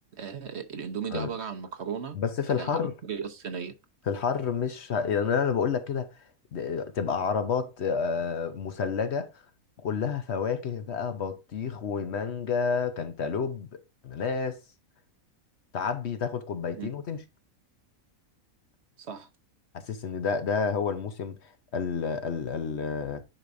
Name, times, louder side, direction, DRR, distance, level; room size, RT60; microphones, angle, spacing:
voice 1, 0.2-2.2 2.5-3.7 16.8-16.9 19.0-19.3, right 7 dB, 50° right, 1.1 m, -36 dB
voice 2, 2.1-2.9 4.1-6.1 6.5-9.3 9.8-13.7 14.0-14.6 15.7-17.2 19.7-21.4 21.7-23.2, left 6 dB, 55° left, 1.0 m, -29 dB
10.5 x 4.9 x 2.6 m
omnidirectional pair, 1.5 m